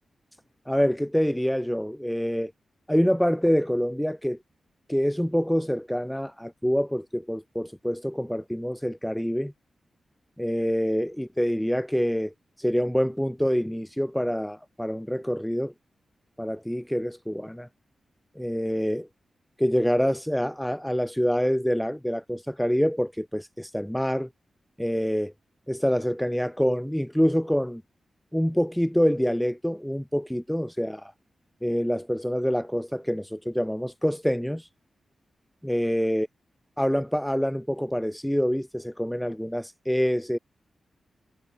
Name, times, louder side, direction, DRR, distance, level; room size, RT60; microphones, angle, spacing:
voice 1, 0.7-2.5 2.9-4.4 4.9-9.5 10.4-15.7 16.4-17.7 18.3-19.1 19.6-24.3 24.8-25.3 25.7-27.8 28.3-31.1 31.6-34.7 35.6-36.3 36.8-40.4, equal, ahead, 1.1 m, -26 dB
wide cardioid pair, 170°, 0 cm